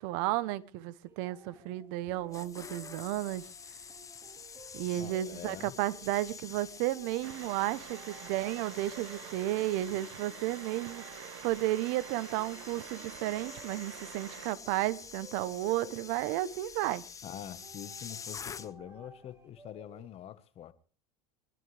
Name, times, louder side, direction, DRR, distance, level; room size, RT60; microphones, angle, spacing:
voice 1, 0.0-3.5 4.7-17.0, right 15 dB, 70° right, 1.0 m, -33 dB
sound 1, 1.1-20.1, right 3 dB, 15° right, 2.0 m, -57 dB
sound 2, 2.1-19.0 19.3-19.6, left 6 dB, 20° left, 0.8 m, -48 dB
voice 2, 4.9-5.7 17.2-20.7, left 11 dB, 40° left, 1.3 m, -45 dB
sound 3, 7.2-14.5, right 12 dB, 90° right, 1.5 m, -48 dB
24.0 x 12.0 x 3.4 m
supercardioid pair, 115°, 15 cm